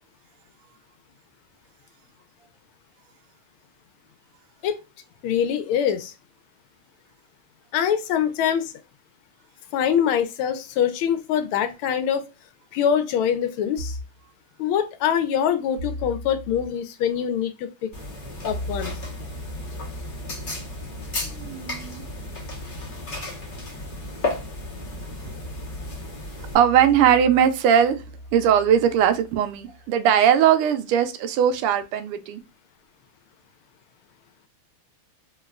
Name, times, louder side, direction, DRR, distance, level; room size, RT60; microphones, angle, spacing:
voice 1, 5.2-6.1 7.7-8.7 9.7-12.2 12.7-14.0 14.6-17.9 18.4-18.9, left 8 dB, 80° left, 1.4 m, -24 dB
sound 1, 13.8-14.2 15.8-16.7 18.5-29.9, equal, 45° right, 1.6 m, -39 dB
sound 2, 17.9-26.5, left 2 dB, 45° left, 0.7 m, -34 dB
voice 2, 21.2-22.1 26.5-28.0 28.3-32.4, right 9 dB, 90° right, 1.5 m, -20 dB
3.9 x 2.2 x 2.3 m
omnidirectional pair, 2.4 m